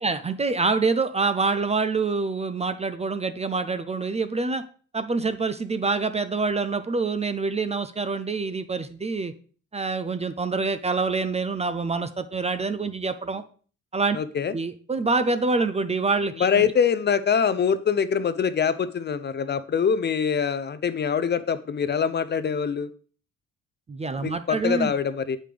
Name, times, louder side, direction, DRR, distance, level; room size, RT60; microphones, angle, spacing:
voice 1, 0.0-4.6 4.9-9.3 9.7-13.4 13.9-14.2 14.5-16.7 23.9-24.9, right 4 dB, 20° right, 11 dB, 0.4 m, -26 dB
voice 2, 14.1-14.5 16.4-22.9 24.2-25.4, left 7 dB, 35° left, 14 dB, 0.5 m, -24 dB
7.6 x 5.1 x 3.3 m, 0.41 s
cardioid pair, 90°, 30 cm